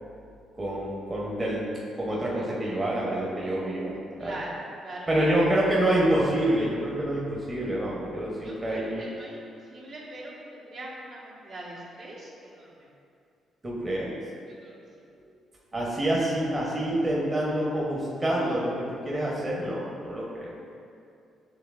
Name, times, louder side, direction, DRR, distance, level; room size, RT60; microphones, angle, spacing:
voice 1, 0.6-1.7 2.0-4.4 5.1-9.1 13.6-14.2 15.7-20.6, right 1 dB, 25° right, -5 dB, 0.8 m, -27 dB
voice 2, 4.2-5.5 8.4-10.3 10.7-11.1 11.4-12.3 12.6-12.7 14.6-14.7, right 1 dB, 70° right, -7 dB, 1.3 m, -41 dB
6.7 x 3.1 x 2.4 m, 2.5 s
cardioid pair, 90°, 0 cm